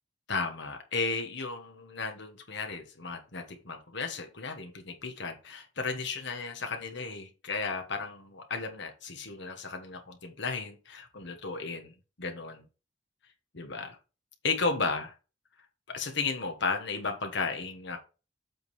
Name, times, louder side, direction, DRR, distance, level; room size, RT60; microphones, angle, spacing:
voice 1, 0.3-11.9 12.2-12.6 13.5-14.0 14.4-15.1 15.9-18.0, left 4 dB, 65° left, 1.4 m, -34 dB
8.0 x 3.8 x 4.9 m
head